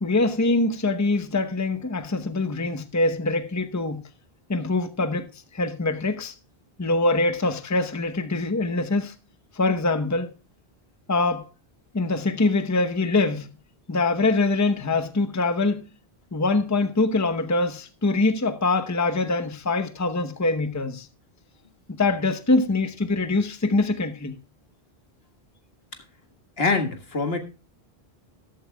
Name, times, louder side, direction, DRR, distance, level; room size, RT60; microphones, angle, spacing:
voice 1, 0.0-4.0 4.5-6.3 6.8-9.1 9.5-10.3 11.1-11.5 11.9-13.5 13.9-15.9 16.3-21.1 22.0-24.4, left 2 dB, 20° left, 0.9 m, -24 dB
voice 2, 26.6-27.4, left 3 dB, 75° left, 2.0 m, -24 dB
13.5 x 13.0 x 2.3 m
omnidirectional pair, 1.0 m